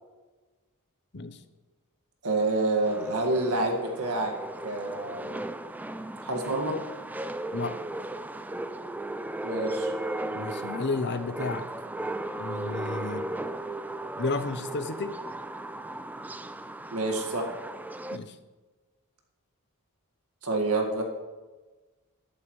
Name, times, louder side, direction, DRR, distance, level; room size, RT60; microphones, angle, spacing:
voice 1, 2.2-4.3 4.6-5.4 6.2-6.8 9.4-9.9 16.9-17.5 20.4-21.0, right 2 dB, 80° right, 2 dB, 1.9 m, -28 dB
sound 1, 2.8-18.2, right 1 dB, 5° right, 0.3 m, -36 dB
voice 2, 10.3-11.6 12.4-13.2 14.2-15.1 18.1-18.3, left 3 dB, 50° left, 11 dB, 0.7 m, -32 dB
13.0 x 12.0 x 3.2 m, 1.3 s
head